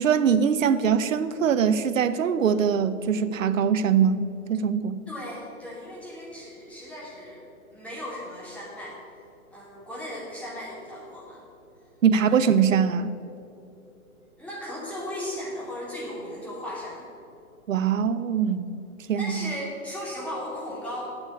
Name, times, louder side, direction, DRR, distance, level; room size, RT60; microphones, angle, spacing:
voice 1, 0.0-4.2 4.5-5.0 12.0-13.1 17.7-18.7 19.1-19.5, right 7 dB, 65° right, 13 dB, 0.8 m, -22 dB
voice 2, 5.1-9.0 9.5-11.4 12.1-12.4 14.3-17.1 19.2-21.1, left 1 dB, 5° left, -7 dB, 2.6 m, -36 dB
8.4 x 8.2 x 8.2 m, 2.7 s
hypercardioid pair, 150°, 43 cm